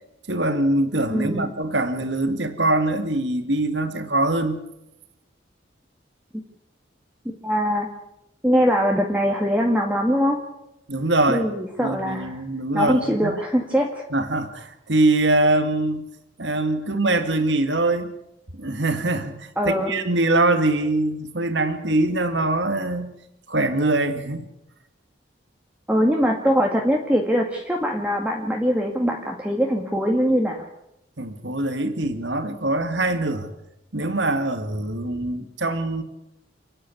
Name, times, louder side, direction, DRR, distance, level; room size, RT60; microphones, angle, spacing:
voice 1, 0.3-4.6 10.9-11.5 11.8-13.3 14.1-16.0 16.4-18.1 18.5-23.1 23.5-24.5 31.2-33.5 33.9-36.0, right 2 dB, 75° right, 9 dB, 2.0 m, -23 dB
voice 2, 1.1-1.5 7.4-7.9 8.4-10.4 11.3-12.4 12.7-14.0 19.6-19.9 25.9-30.6, equal, 5° right, 0 dB, 1.9 m, -22 dB
29.5 x 10.0 x 9.8 m, 0.85 s
head